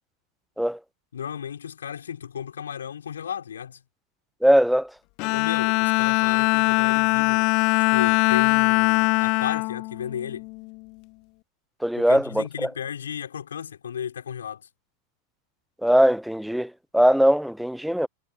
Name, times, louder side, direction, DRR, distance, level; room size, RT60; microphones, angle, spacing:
voice 1, 1.1-3.8 5.3-7.5 7.9-10.5 11.9-14.7, left 8 dB, 65° left, 6.3 m, -34 dB
voice 2, 4.4-4.9 11.8-12.7 15.8-18.1, equal, ahead, 0.9 m, -20 dB
Bowed string instrument, 5.2-10.7, left 28 dB, 45° left, 0.7 m, -22 dB
figure-of-eight pair, 90°, 0 cm